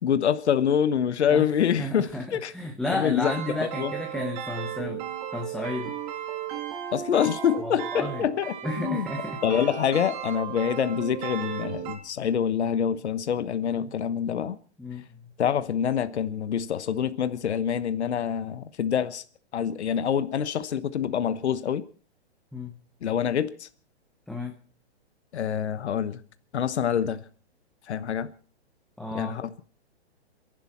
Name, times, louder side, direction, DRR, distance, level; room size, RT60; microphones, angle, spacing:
voice 1, 0.0-2.5 2.9-3.3 3.6-3.9 6.9-9.1 9.4-14.6 15.4-19.2 19.5-21.8 23.0-23.7 25.3-26.2 26.5-27.2 27.9-28.3 29.1-29.6, left 8 dB, 75° left, 1.2 m, -26 dB
voice 2, 1.8-6.0 7.6-8.3 8.6-9.6 13.8-13.9 14.8-15.3 22.5-22.7 24.3-24.5 29.0-29.4, left 1 dB, ahead, 1.1 m, -33 dB
sound 1, 3.2-12.0, right 10 dB, 35° right, 2.8 m, -35 dB
28.0 x 11.5 x 4.4 m
hypercardioid pair, 145°, 33 cm